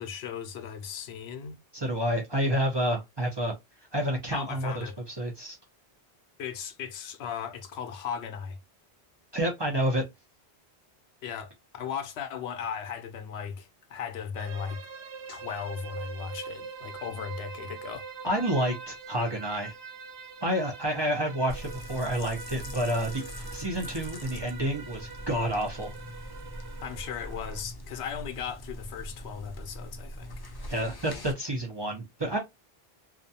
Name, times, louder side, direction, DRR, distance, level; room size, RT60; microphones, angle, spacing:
voice 1, 0.0-1.6 4.3-5.0 6.4-8.6 11.2-14.8 15.3-18.1 26.8-30.3, left 7 dB, 75° left, 0.8 m, -37 dB
voice 2, 1.7-3.5 3.9-5.6 9.3-10.0 18.2-19.7 20.4-25.9 30.7-32.4, right 1 dB, 30° right, 0.6 m, -29 dB
sound 1, 14.4-27.6, right 6 dB, 90° right, 0.9 m, -44 dB
sound 2, 21.5-31.3, equal, 35° left, 0.4 m, -42 dB
2.4 x 2.2 x 2.6 m
omnidirectional pair, 1.1 m